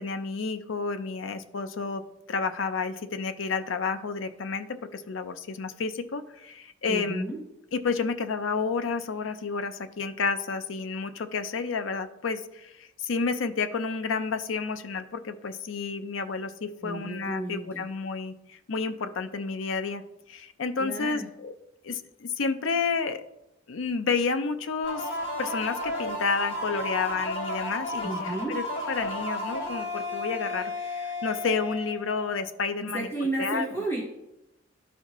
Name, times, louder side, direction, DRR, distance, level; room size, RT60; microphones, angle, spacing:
voice 1, 0.0-2.0 2.3-4.7 5.1-6.2 6.8-7.2 7.7-12.4 13.1-16.5 16.8-18.3 18.7-20.0 20.6-21.5 21.9-22.0 22.4-23.2 23.7-25.0 25.4-30.6 31.2-33.7, left 4 dB, 85° left, 9 dB, 0.6 m, -30 dB
voice 2, 6.9-7.4 16.8-17.9 20.8-21.3 28.0-28.6 32.8-34.0, right 2 dB, 15° left, -4 dB, 1.2 m, -32 dB
sound 1, 24.8-32.4, left 1 dB, 70° left, 2.5 m, -33 dB
12.0 x 4.2 x 3.0 m, 0.91 s
head